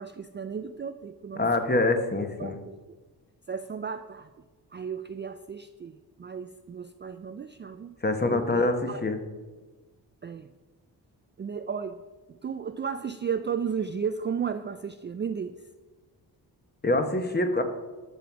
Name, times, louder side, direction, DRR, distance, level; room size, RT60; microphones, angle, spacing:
voice 1, 0.0-1.5 2.4-2.8 3.5-4.3 4.7-8.0 8.3-9.0 10.2-10.5 11.4-12.0 12.3-15.7, right 6 dB, 30° right, 10 dB, 0.3 m, -34 dB
voice 2, 1.3-2.6 8.0-9.2 16.8-17.6, left 2 dB, 25° left, 6 dB, 1.2 m, -25 dB
13.5 x 5.3 x 6.0 m, 1.3 s
cardioid pair, 90°, 42 cm